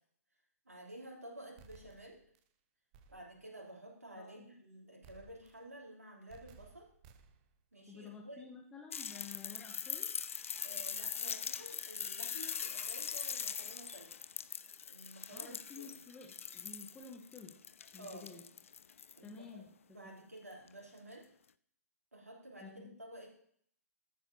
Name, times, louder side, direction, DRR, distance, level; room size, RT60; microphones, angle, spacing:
voice 1, 0.6-2.2 3.1-6.9 7.7-8.4 10.6-14.2 14.8-15.9 17.9-18.4 19.2-19.6 19.9-21.3 22.1-23.3, right 1 dB, 75° right, -2 dB, 3.2 m, -52 dB
sound 1, 1.6-2.5 2.9-3.5 5.0-5.8 6.3-7.6, right 4 dB, 25° right, 0.7 m, -60 dB
voice 2, 4.2-4.5 7.9-10.1 15.3-17.5 17.9-18.5 19.2-20.2 22.6-23.0, left 5 dB, 10° left, 2 dB, 0.9 m, -52 dB
sound 2, 8.9-19.3 20.7-20.8, left 7 dB, 55° left, 0.4 m, -42 dB
14.0 x 7.9 x 2.8 m, 0.63 s
figure-of-eight pair, 125°, 8 cm